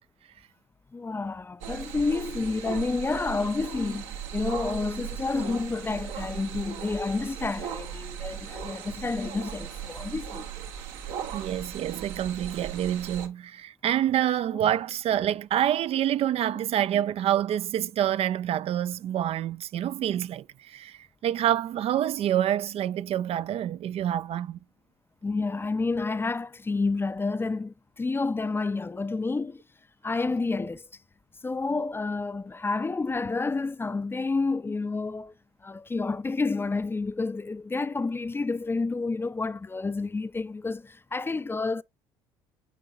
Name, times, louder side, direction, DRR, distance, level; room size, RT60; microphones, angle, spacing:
voice 1, 0.9-10.5 25.2-29.6 30.0-30.9 31.4-35.3 35.6-41.8, left 3 dB, 15° left, 0.4 m, -29 dB
sound 1, 1.6-13.3, right 9 dB, 75° right, 1.1 m, -38 dB
voice 2, 11.3-24.6, right 11 dB, 50° right, 0.4 m, -27 dB
9.9 x 3.8 x 2.7 m
hypercardioid pair, 65°, 13 cm